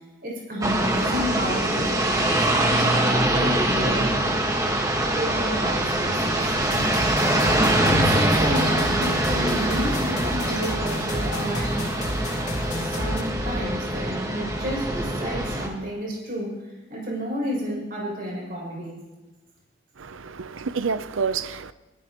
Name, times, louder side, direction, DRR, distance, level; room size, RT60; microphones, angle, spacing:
voice 1, 0.2-4.2 5.2-6.5 7.9-11.8 12.7-19.0, equal, 50° right, 7.0 m, -31 dB
sound 1, 0.6-15.7, right 1 dB, 15° right, 1.6 m, -23 dB
sound 2, 6.6-13.2, left 1 dB, 35° left, 2.4 m, -32 dB
voice 2, 20.0-21.7, right 5 dB, 85° right, 0.7 m, -28 dB
25.5 x 15.5 x 3.1 m
head